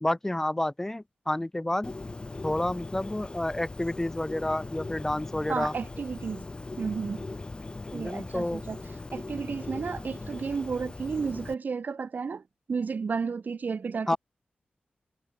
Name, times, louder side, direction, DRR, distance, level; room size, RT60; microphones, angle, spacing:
voice 1, 0.0-1.9 2.4-5.7 7.9-8.6 14.1-14.2, left 1 dB, 10° left, 0.3 m, -29 dB
Bird, 1.8-11.5, left 3 dB, 30° left, 0.7 m, -40 dB
voice 2, 5.5-6.4 6.8-7.2 7.9-8.8 9.1-12.4 12.7-14.2, right 5 dB, 55° right, 0.5 m, -32 dB
wide cardioid pair, 130°, 3 cm